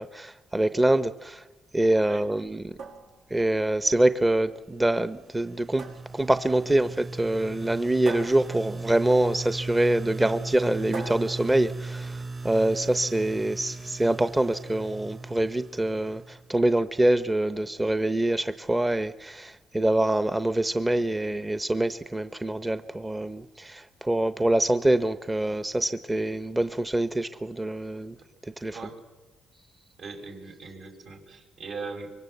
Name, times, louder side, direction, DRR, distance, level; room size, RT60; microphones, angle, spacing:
voice 1, 0.0-1.4 1.7-2.7 3.3-5.8 6.1-28.1 28.6-28.8, right 1 dB, 15° right, 11 dB, 0.8 m, -25 dB
sound 1, 2.6-12.5, right 3 dB, 85° right, 6.0 m, -44 dB
sound 2, 4.9-16.7, right 3 dB, 35° right, 2.5 m, -38 dB
voice 2, 30.0-32.1, right 4 dB, 70° right, 3 dB, 5.7 m, -40 dB
25.0 x 23.5 x 8.1 m, 1.2 s
cardioid pair, 90°, 0 cm